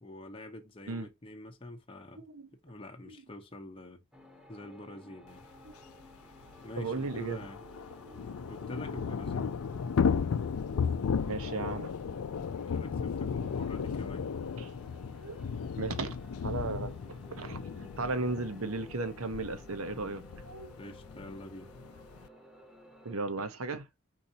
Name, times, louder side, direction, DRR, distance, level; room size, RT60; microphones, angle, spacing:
voice 1, 0.0-2.2 2.6-4.0 4.5-5.4 6.6-7.6 8.5-9.6 12.7-14.3 20.8-21.7, left 1 dB, 25° left, 0.8 m, -46 dB
voice 2, 2.2-2.5 3.0-3.2 5.6-5.8 6.8-7.5 8.0-8.2 11.3-11.9 14.6-14.7 15.1-15.5 15.8-16.2 16.4-20.7 23.0-23.9, right 3 dB, 75° right, 0.9 m, -36 dB
sound 1, 4.1-23.2, equal, 5° right, 0.9 m, -54 dB
Thunder / Rain, 5.7-5.8 6.0-6.1 6.4-22.3, left 6 dB, 80° left, 0.4 m, -35 dB
4.6 x 4.1 x 2.7 m
head